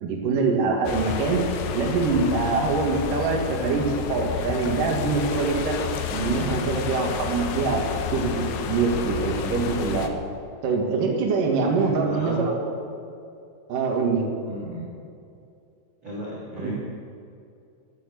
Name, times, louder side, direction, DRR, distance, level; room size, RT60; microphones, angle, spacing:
voice 1, 0.0-1.4 1.7-5.8 6.1-10.1 10.6-12.6 13.7-14.2 16.6-16.7, right 4 dB, 55° right, -1 dB, 2.7 m, -24 dB
sound 1, 0.9-10.1, left 7 dB, 75° left, 2.6 m, -30 dB
voice 2, 11.5-12.5 14.5-14.9 16.0-16.7, right 1 dB, 30° right, -6 dB, 2.8 m, -35 dB
13.0 x 12.0 x 7.7 m, 2.6 s
omnidirectional pair, 5.9 m